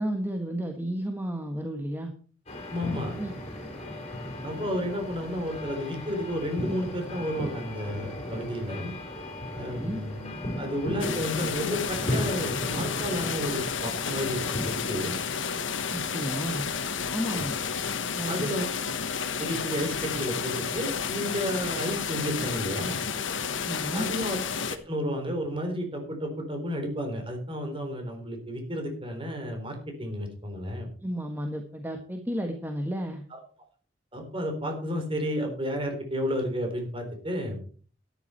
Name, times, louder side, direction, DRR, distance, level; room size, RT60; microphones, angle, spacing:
voice 1, 0.0-2.1 3.2-3.3 9.6-10.0 15.9-16.7 17.1-17.5 18.1-18.5 23.6-24.1 31.0-33.2, right 1 dB, 10° right, 4 dB, 1.3 m, -32 dB
sound 1, 2.5-15.0, left 1 dB, 35° left, 4.2 m, -36 dB
voice 2, 2.7-3.1 4.4-8.9 9.6-10.3 10.6-15.2 17.3-17.5 18.3-18.7 19.4-23.0 23.9-24.4 24.9-30.9 34.1-37.6, equal, 30° right, 4 dB, 3.8 m, -32 dB
sound 2, 11.0-24.8, left 6 dB, 80° left, 1.3 m, -31 dB
13.0 x 10.5 x 4.4 m, 0.42 s
head